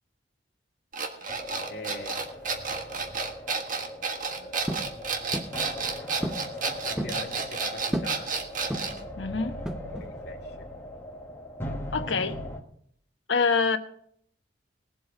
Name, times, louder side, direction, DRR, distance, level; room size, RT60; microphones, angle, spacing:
sound 1, 0.9-9.0, right 4 dB, 45° right, 1.5 m, -31 dB
sound 2, 1.3-12.6, left 1 dB, 10° left, 1.5 m, -40 dB
voice 1, 1.7-2.2 4.3-4.8 5.8-8.3 9.9-10.7, left 1 dB, 60° left, 2.2 m, -43 dB
sound 3, 4.7-4.9 5.3-5.6 6.2-6.5 6.8-7.2 7.9-8.2 8.7-9.1 9.7-10.1, equal, 5° right, 0.7 m, -32 dB
voice 2, 9.2-9.5 11.9-12.4 13.3-13.8, left 5 dB, 85° left, 1.1 m, -25 dB
19.0 x 7.8 x 5.0 m
head